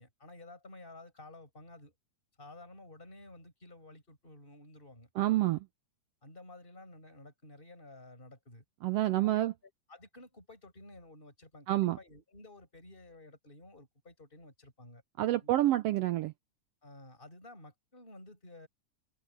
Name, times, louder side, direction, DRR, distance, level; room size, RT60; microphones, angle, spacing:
voice 1, 0.0-1.9 2.4-5.1 6.2-8.6 9.1-15.0 15.4-15.5 16.8-18.7, left 2 dB, 15° left, 7.4 m, -53 dB
voice 2, 5.2-5.7 8.8-9.5 11.7-12.0 15.2-16.3, right 15 dB, 85° right, 1.3 m, -28 dB
omnidirectional pair, 3.5 m